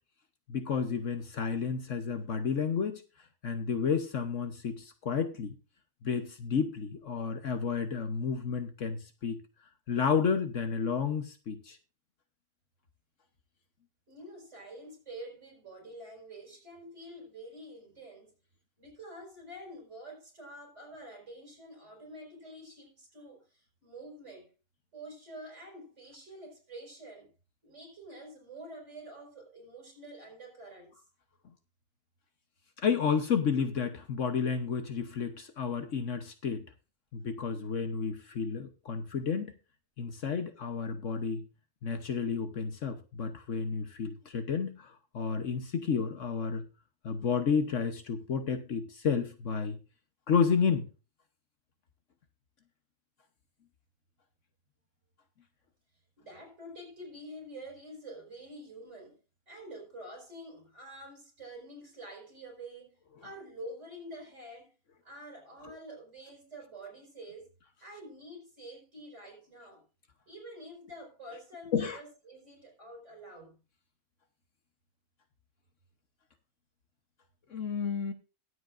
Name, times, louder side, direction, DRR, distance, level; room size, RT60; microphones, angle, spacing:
voice 1, 0.5-3.0 3.4-5.5 6.0-9.4 9.9-11.8 32.8-36.6 37.1-39.5 40.0-41.4 41.8-46.7 47.0-49.8 50.3-50.9 71.7-72.0 77.5-78.1, left 6 dB, 60° left, 1.3 m, -31 dB
voice 2, 14.1-18.4 18.8-24.5 24.9-27.3 27.6-31.0 56.2-59.2 59.5-64.8 65.0-67.5 67.8-69.8 70.3-73.6, right 1 dB, 50° right, 5.7 m, -47 dB
22.0 x 8.0 x 2.5 m
omnidirectional pair, 1.6 m